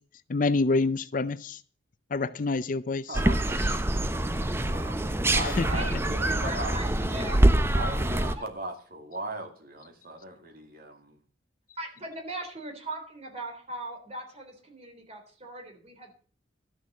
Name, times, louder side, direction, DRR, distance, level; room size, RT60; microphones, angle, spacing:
voice 1, 0.3-1.6 2.1-3.2 5.6-5.7, left 3 dB, 45° left, 15 dB, 0.5 m, -27 dB
sound 1, 3.1-8.4, right 1 dB, 15° right, 0.7 m, -25 dB
voice 2, 3.1-3.9 4.3-5.1 5.3-6.8 7.7-11.2, right 1 dB, 50° right, 5 dB, 2.3 m, -38 dB
voice 3, 6.2-7.5 8.3-8.5 11.8-16.1, right 1 dB, 35° right, 2 dB, 3.6 m, -39 dB
12.5 x 6.7 x 7.3 m, 0.42 s
head